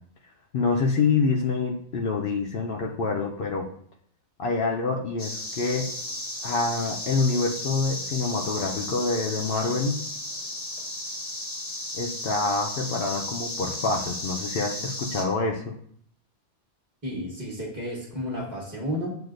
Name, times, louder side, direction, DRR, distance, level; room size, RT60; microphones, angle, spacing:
voice 1, 0.5-3.6 4.4-5.9 6.4-10.0 11.9-15.7, left 4 dB, 65° left, 0 dB, 0.7 m, -26 dB
sound 1, 5.2-15.2, left 1 dB, 30° left, 0.7 m, -34 dB
voice 2, 17.0-19.2, equal, 20° right, -8 dB, 1.0 m, -32 dB
7.7 x 2.6 x 2.5 m, 0.62 s
omnidirectional pair, 1.1 m